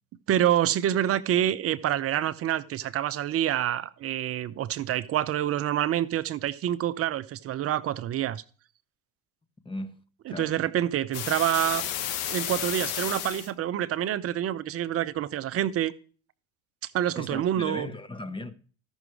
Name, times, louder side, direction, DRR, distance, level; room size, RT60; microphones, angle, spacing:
voice 1, 0.3-8.4 10.3-11.9 12.3-15.9 16.8-17.9, right 11 dB, 35° right, 0.6 m, -27 dB
voice 2, 9.6-10.0 10.3-10.6 17.2-18.5, left 2 dB, 10° left, 1.1 m, -37 dB
sound 1, 11.1-13.5, left 10 dB, 70° left, 1.3 m, -32 dB
13.5 x 6.1 x 4.8 m
hypercardioid pair, 85°, 42 cm